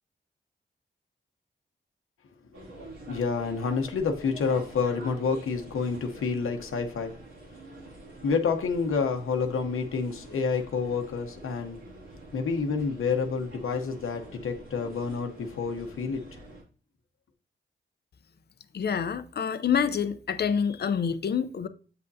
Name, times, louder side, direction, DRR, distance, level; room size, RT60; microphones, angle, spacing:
sound 1, 2.5-16.6, right 2 dB, 80° right, 2.5 m, -47 dB
voice 1, 3.1-7.1 8.2-11.8 12.3-16.2, left 5 dB, 90° left, 0.9 m, -28 dB
voice 2, 18.7-21.7, left 7 dB, 50° left, 0.6 m, -27 dB
7.7 x 5.5 x 2.7 m
cardioid pair, 60°, 21 cm